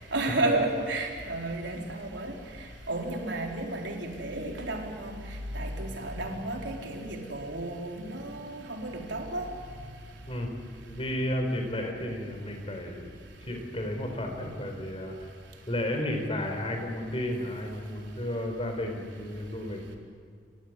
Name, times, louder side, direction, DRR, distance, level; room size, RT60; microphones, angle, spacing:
voice 1, 0.1-2.3 2.9-5.2 5.5-9.5, right 2 dB, 80° right, 1 dB, 4.2 m, -32 dB
voice 2, 10.9-13.1 13.4-15.2 15.7-19.8, left 1 dB, 30° left, 4 dB, 4.3 m, -32 dB
29.5 x 15.5 x 9.8 m, 2.1 s
head